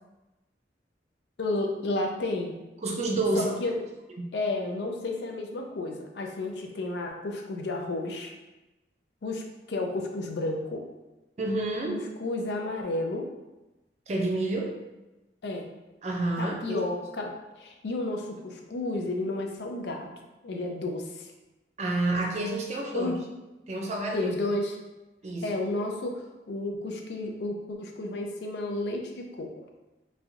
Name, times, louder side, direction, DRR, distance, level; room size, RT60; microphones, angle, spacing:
voice 1, 1.4-2.5 3.3-3.8 4.3-8.3 9.2-10.8 11.9-13.3 15.4-15.7 16.4-20.1 20.4-21.3 22.9-23.2 24.1-24.8 25.4-29.5, left 2 dB, 70° left, 2 dB, 0.4 m, -32 dB
voice 2, 2.8-3.6 4.2-4.3 11.4-11.9 14.1-14.8 16.0-16.8 21.8-23.2 23.7-24.2 25.2-25.5, right 2 dB, 40° right, 1 dB, 0.4 m, -29 dB
3.1 x 2.6 x 2.3 m, 1.0 s
head